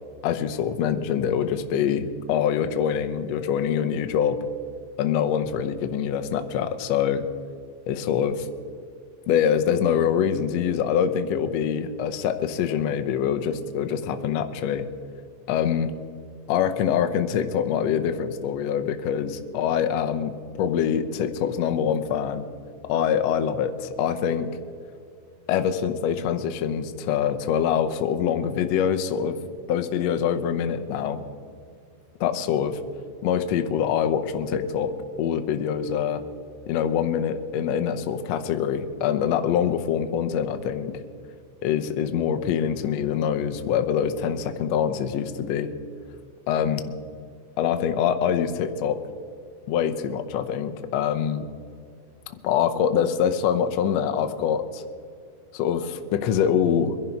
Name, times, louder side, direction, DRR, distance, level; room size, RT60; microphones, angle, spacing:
voice 1, 0.2-4.4 5.0-7.3 7.9-8.5 9.3-14.9 15.5-15.9 16.5-22.5 22.8-24.5 25.5-29.4 29.7-31.2 32.2-32.8 33.2-36.2 36.7-41.0 41.6-45.7 46.5-46.9 47.6-49.0 49.7-51.5 52.4-54.8 55.5-57.0, left 8 dB, 70° left, 8 dB, 1.7 m, -24 dB
23.5 x 11.0 x 4.6 m, 2.3 s
omnidirectional pair, 3.8 m